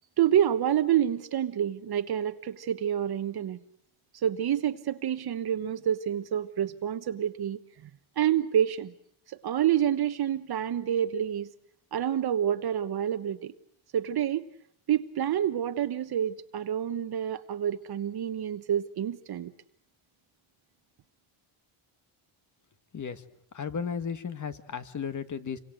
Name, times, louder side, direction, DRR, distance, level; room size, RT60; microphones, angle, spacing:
voice 1, 0.2-3.6 4.2-7.9 8.2-8.9 9.3-11.5 11.9-13.5 13.9-14.5 14.9-19.5, right 10 dB, 50° right, 9 dB, 1.2 m, -28 dB
voice 2, 23.5-25.6, left 6 dB, 35° left, 11 dB, 1.8 m, -34 dB
28.5 x 24.5 x 7.9 m, 0.68 s
cardioid pair, 135°, 48 cm